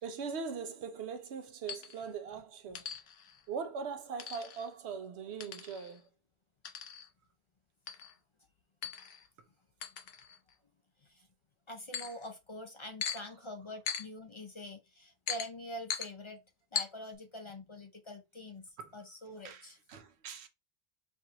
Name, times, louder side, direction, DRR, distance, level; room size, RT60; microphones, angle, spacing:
voice 1, 0.0-2.9 3.5-6.1 18.8-18.9 19.4-20.5, right 5 dB, 85° right, 1.0 m, -41 dB
sound 1, 1.7-2.1 2.7-3.4 4.2-4.7 5.4-6.0 6.6-7.1 7.9-8.1 8.8-9.3 9.8-10.5 11.9-12.3 13.0-13.2 13.9-14.1 15.3-15.5 15.9-16.1 16.7-16.9, left 7 dB, 70° left, 0.8 m, -39 dB
voice 2, 11.7-16.4 16.7-19.8, left 1 dB, 40° left, 0.4 m, -45 dB
4.5 x 2.5 x 2.9 m
omnidirectional pair, 1.1 m